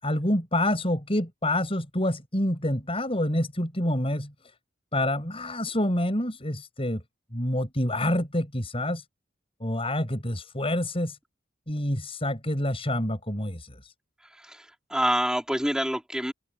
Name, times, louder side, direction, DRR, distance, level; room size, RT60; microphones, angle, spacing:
voice 1, 0.0-4.3 4.9-7.0 7.3-9.0 9.6-11.2 11.7-13.9, left 1 dB, 30° left, 6.9 m, -27 dB
voice 2, 14.3-16.3, equal, 5° right, 4.3 m, -27 dB
open air
head